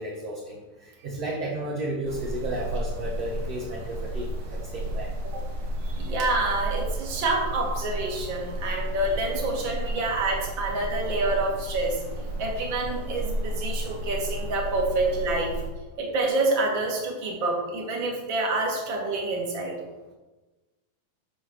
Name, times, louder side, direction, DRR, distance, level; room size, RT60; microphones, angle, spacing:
voice 1, 0.0-5.1, right 1 dB, 55° right, -3 dB, 2.0 m, -33 dB
sound 1, 2.1-15.7, right 1 dB, 85° right, 1.1 m, -32 dB
voice 2, 5.9-12.0 12.4-15.5 16.0-19.8, right 2 dB, 35° right, -1 dB, 2.3 m, -27 dB
14.0 x 4.9 x 6.3 m, 1.2 s
omnidirectional pair, 4.6 m